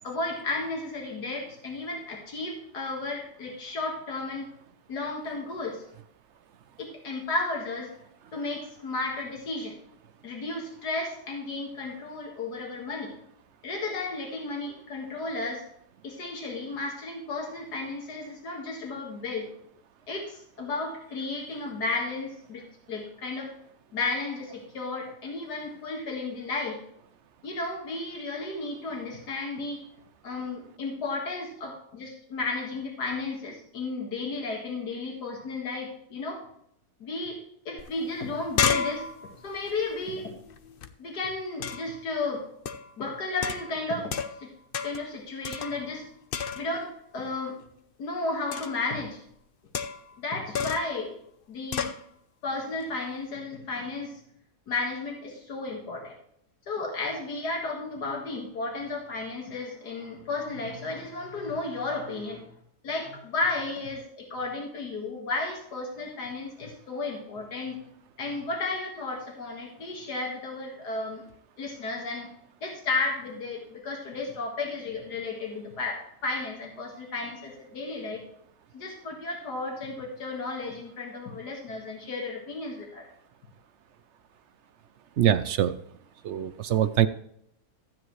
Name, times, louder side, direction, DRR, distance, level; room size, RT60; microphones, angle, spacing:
voice 1, 0.0-4.5 4.9-5.8 6.8-7.9 8.3-9.8 10.2-13.1 13.6-15.6 16.0-19.5 20.1-23.5 23.9-26.8 27.4-29.8 30.2-36.4 37.0-39.0 39.4-40.3 41.0-42.5 43.0-44.1 44.4-44.5 44.8-46.1 46.6-47.6 48.0-49.2 50.2-51.1 51.5-51.9 52.4-54.2 54.7-56.1 56.7-62.4 62.8-67.8 68.2-71.2 71.6-72.3 72.6-78.2 78.7-83.0, left 3 dB, 85° left, 0 dB, 2.3 m, -33 dB
sound 1, 37.8-37.9 38.2-40.9 41.6-42.0 42.7-42.9 43.4-44.5 44.7-45.1 45.4-46.0 46.3-46.9 48.5-48.9 49.7-50.2 50.5-51.0 51.7-52.0, left 6 dB, 55° left, 0.6 m, -31 dB
voice 2, 85.2-85.7 86.2-87.1, right 10 dB, 65° right, 11 dB, 0.7 m, -23 dB
12.5 x 8.9 x 3.1 m, 0.70 s
omnidirectional pair, 1.7 m